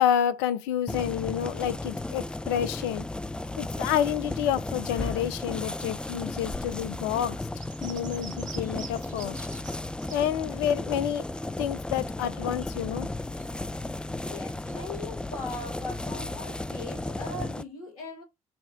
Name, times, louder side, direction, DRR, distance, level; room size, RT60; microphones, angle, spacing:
voice 1, 0.0-3.0 3.6-7.5 7.8-9.4 10.1-11.3 11.6-13.1, left 10 dB, 70° left, 0.4 m, -29 dB
sound 1, 0.9-17.6, left 2 dB, 5° left, 0.3 m, -34 dB
sound 2, 7.6-10.4 10.7-15.9, right 6 dB, 45° right, 1.0 m, -50 dB
voice 2, 14.2-18.2, left 2 dB, 85° left, 1.1 m, -40 dB
5.1 x 2.2 x 3.6 m
hypercardioid pair, 50°, 18 cm